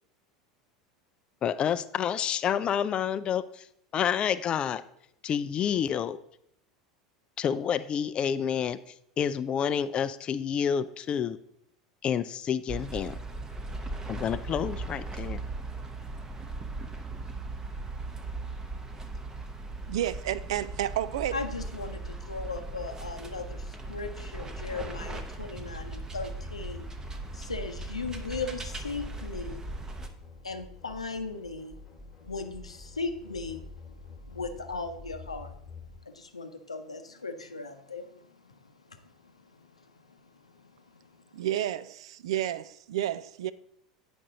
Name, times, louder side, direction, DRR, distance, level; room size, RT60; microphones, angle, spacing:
voice 1, 1.4-3.7 3.9-4.8 5.2-6.2 7.4-8.8 9.2-11.4 12.0-13.2 14.1-15.4, left 8 dB, 30° left, 0.4 m, -29 dB
sound 1, 12.7-30.1, right 2 dB, 15° right, 0.8 m, -38 dB
voice 2, 19.9-21.4 41.3-43.5, right 12 dB, 60° right, 0.3 m, -31 dB
voice 3, 21.3-26.9 27.3-29.6 30.4-31.7 32.2-33.6 34.3-35.5 36.1-40.2 40.4-41.0, left 4 dB, 80° left, 0.7 m, -38 dB
sound 2, 24.4-36.0, left 4 dB, 10° left, 1.4 m, -48 dB
8.6 x 5.2 x 3.8 m
figure-of-eight pair, 75°, 3 cm